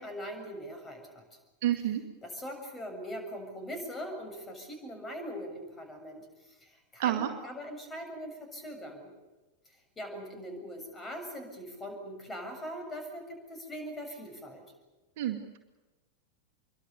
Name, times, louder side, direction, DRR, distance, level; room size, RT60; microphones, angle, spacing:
voice 1, 0.0-1.4 2.2-9.1 9.7-14.6, equal, 15° left, 5 dB, 7.2 m, -41 dB
voice 2, 1.6-2.0 7.0-7.3 15.2-15.6, right 12 dB, 50° right, 5 dB, 2.1 m, -29 dB
27.0 x 23.5 x 6.9 m, 1.1 s
figure-of-eight pair, 90°, 0 cm